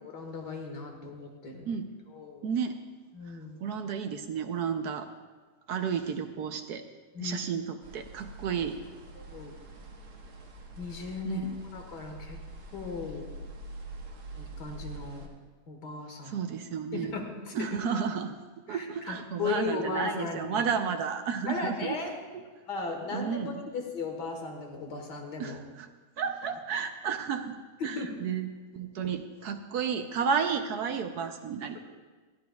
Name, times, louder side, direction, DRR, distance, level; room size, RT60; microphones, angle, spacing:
voice 1, 0.0-1.7 2.1-2.5 3.1-3.6 7.1-7.4 9.2-9.5 10.8-12.4 12.7-13.3 14.3-15.3 15.7-16.4 16.9-17.7 18.7-20.7 21.5-22.1 22.7-25.6 27.8-28.1, left 4 dB, 55° left, 2 dB, 2.0 m, -36 dB
voice 2, 2.4-2.8 3.3-5.1 5.7-6.9 7.2-8.8 11.2-11.6 16.2-17.1 17.5-18.3 18.7-22.0 22.3-22.4 23.1-23.6 25.4-25.9 26.2-27.6 27.8-31.8, right 6 dB, 65° right, 7 dB, 1.0 m, -32 dB
sound 1, 7.8-15.3, right 2 dB, 80° right, 2.2 m, -45 dB
20.5 x 13.0 x 2.3 m, 1.3 s
omnidirectional pair, 2.2 m